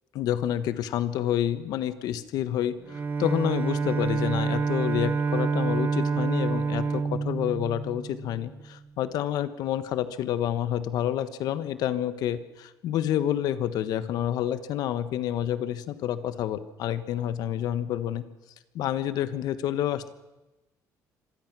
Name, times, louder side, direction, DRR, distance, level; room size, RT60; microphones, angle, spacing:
voice 1, 0.1-18.2 18.7-20.1, left 11 dB, 75° left, 12 dB, 1.2 m, -29 dB
Bowed string instrument, 2.8-8.5, right 4 dB, 30° right, 1.0 m, -27 dB
25.5 x 18.5 x 6.2 m, 1.0 s
cardioid pair, 120°, 7 cm